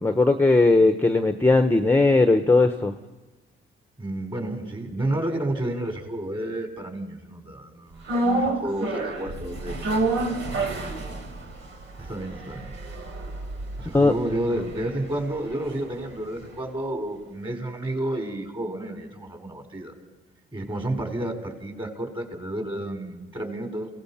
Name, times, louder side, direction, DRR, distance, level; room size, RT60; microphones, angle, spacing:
voice 1, 0.0-2.9 13.9-14.1, left 3 dB, 10° left, 7 dB, 1.0 m, -18 dB
voice 2, 4.0-10.3 10.7-11.0 12.0-12.7 13.8-19.9 20.5-23.9, right 1 dB, 25° right, 4 dB, 4.9 m, -31 dB
sound 1, 8.1-16.4 16.6-16.7, right 2 dB, 75° right, 3.6 m, -30 dB
28.0 x 17.5 x 5.8 m, 1.1 s
cardioid pair, 90°, 20 cm